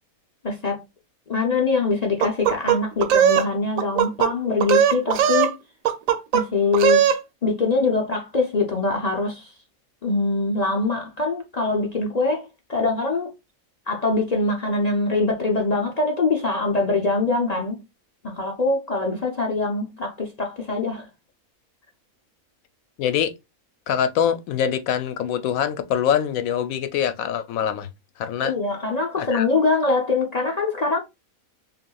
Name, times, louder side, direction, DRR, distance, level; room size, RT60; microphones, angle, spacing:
voice 1, 0.4-0.8 1.3-5.5 6.3-7.0 7.4-9.5 10.0-13.3 13.9-17.8 18.2-21.1 28.4-31.0, left 3 dB, 45° left, 0.5 m, -23 dB
sound 1, 2.2-3.5 3.8-4.3 4.6-5.5 5.9-6.4 6.7-7.2, right 9 dB, 75° right, 1.0 m, -18 dB
voice 2, 23.0-23.3 23.9-27.9 28.2-28.5 29.2-29.5, left 9 dB, 75° left, 1.0 m, -24 dB
5.7 x 2.5 x 2.2 m
omnidirectional pair, 1.5 m